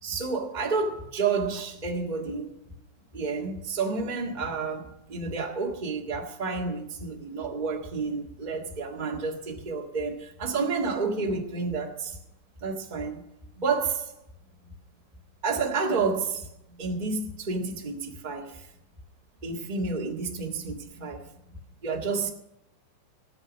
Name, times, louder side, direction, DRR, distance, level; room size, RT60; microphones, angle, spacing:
voice 1, 0.0-2.5 3.1-12.2 12.6-13.2 13.6-14.1 15.4-18.7 19.4-21.3 21.8-22.3, right 4 dB, 35° right, 0.7 m, -30 dB
18.5 x 8.0 x 6.2 m
omnidirectional pair, 4.1 m